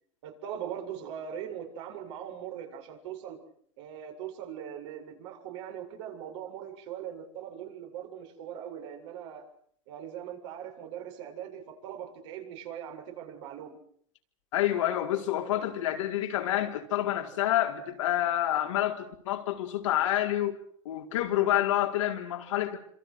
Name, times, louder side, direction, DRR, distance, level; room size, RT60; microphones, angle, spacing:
voice 1, 0.2-3.4 3.8-9.5 9.9-13.8, right 9 dB, 70° right, 7.2 m, -40 dB
voice 2, 14.5-20.6 20.8-22.8, left 13 dB, 85° left, 4.5 m, -28 dB
27.5 x 26.5 x 6.4 m
hypercardioid pair, 105°, 16 cm